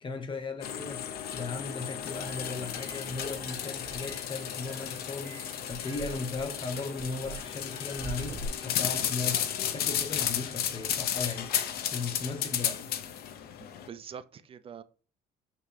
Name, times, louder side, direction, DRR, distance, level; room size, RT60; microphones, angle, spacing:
voice 1, 0.0-11.5 11.9-12.9, left 4 dB, 30° left, 0.9 m, -37 dB
sound 1, 0.6-13.9, left 9 dB, 65° left, 0.6 m, -34 dB
sound 2, 2.0-8.5, right 3 dB, 80° right, 1.6 m, -45 dB
voice 2, 13.6-14.8, right 7 dB, 35° right, 0.4 m, -45 dB
5.8 x 2.8 x 3.2 m
cardioid pair, 110°, 17 cm